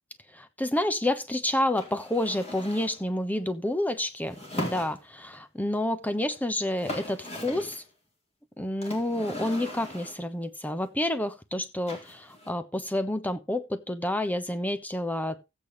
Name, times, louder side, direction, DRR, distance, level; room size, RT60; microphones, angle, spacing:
voice 1, 0.3-7.8 8.6-15.4, left 1 dB, 10° left, 1.1 m, -29 dB
sound 1, 1.8-3.0 4.3-5.4 6.3-6.4 6.6-7.8 8.8-10.3 11.9-12.5, left 1 dB, 30° left, 4.0 m, -39 dB
15.0 x 8.5 x 3.2 m
head